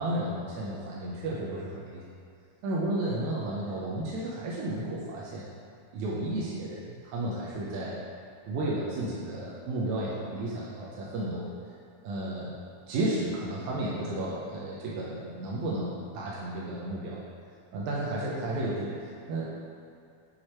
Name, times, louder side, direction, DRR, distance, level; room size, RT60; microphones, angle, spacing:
voice 1, 0.0-2.0 2.6-5.5 5.9-8.0 8.4-11.5 12.0-12.5 12.9-17.2 17.7-19.5, right 1 dB, 75° right, -6 dB, 2.0 m, -33 dB
6.6 x 4.5 x 4.3 m, 2.4 s
omnidirectional pair, 3.6 m